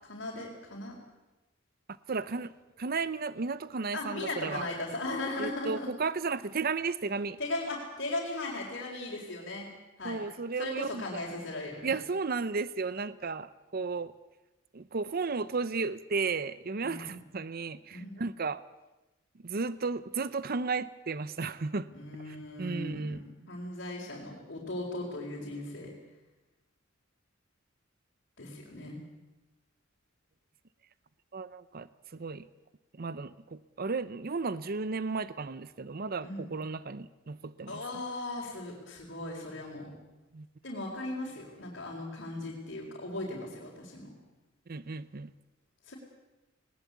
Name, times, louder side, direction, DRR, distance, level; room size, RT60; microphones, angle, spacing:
voice 1, 0.0-0.9 3.9-5.9 7.4-9.6 10.0-10.2 10.6-11.9 16.8-17.1 17.9-18.2 21.9-25.9 28.4-29.0 36.2-36.5 37.7-40.0 40.6-44.1 45.8-46.0, left 2 dB, 60° left, -4 dB, 4.5 m, -38 dB
voice 2, 2.1-2.5 2.8-4.7 5.4-7.4 10.0-11.2 11.8-14.1 14.7-18.6 19.4-21.9 22.3-23.2 31.3-32.5 33.0-37.8 40.3-40.5 44.7-45.3, right 4 dB, 50° right, 16 dB, 0.7 m, -34 dB
20.5 x 19.0 x 8.4 m, 1.1 s
head